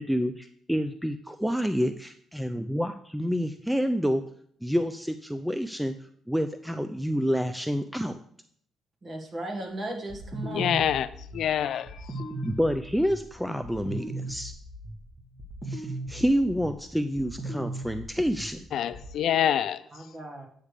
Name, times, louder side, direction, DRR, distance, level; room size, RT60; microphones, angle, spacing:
voice 1, 0.0-4.2 4.6-5.9 6.3-8.2 12.4-14.5 15.6-18.6, equal, ahead, 0.4 m, -28 dB
voice 2, 9.0-10.9 19.9-20.5, right 1 dB, 40° right, 1.7 m, -36 dB
sound 1, 10.1-19.2, right 1 dB, 20° right, 1.5 m, -38 dB
voice 3, 10.5-11.1 11.3-11.9 12.2-12.3 18.7-19.8, left 10 dB, 70° left, 0.4 m, -26 dB
8.6 x 3.4 x 6.5 m
cardioid pair, 90°, 0 cm